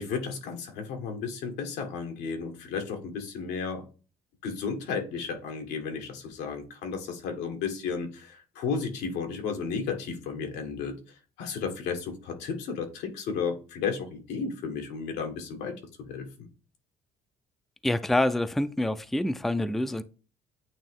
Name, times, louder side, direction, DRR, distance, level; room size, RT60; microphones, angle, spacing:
voice 1, 0.0-3.8 4.4-10.9 11.4-15.7 16.1-16.5, left 5 dB, 90° left, 1.6 m, -33 dB
voice 2, 17.8-20.0, left 1 dB, ahead, 0.4 m, -26 dB
8.8 x 3.0 x 3.6 m
cardioid pair, 110°, 17 cm